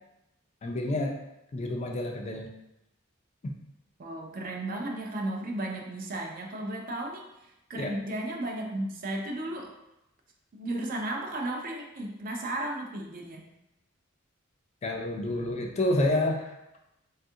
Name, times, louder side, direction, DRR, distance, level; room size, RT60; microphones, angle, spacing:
voice 1, 0.6-1.2 1.5-2.5 3.4-3.5 7.7-7.9 14.8-16.5, left 1 dB, 30° left, 2 dB, 0.3 m, -29 dB
voice 2, 4.0-7.3 7.7-9.8 10.5-13.4, right 1 dB, 45° right, 1 dB, 0.4 m, -34 dB
3.4 x 2.4 x 2.7 m, 0.89 s
head